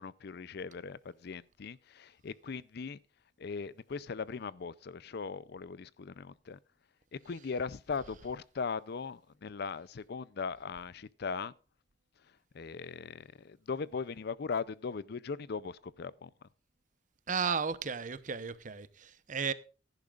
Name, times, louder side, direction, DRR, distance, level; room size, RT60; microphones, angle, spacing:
voice 1, 0.0-3.0 3.4-6.6 7.1-11.5 12.5-16.3, left 5 dB, 60° left, 0.5 m, -39 dB
voice 2, 17.3-19.5, right 6 dB, 45° right, 0.8 m, -34 dB
16.5 x 10.5 x 2.4 m
head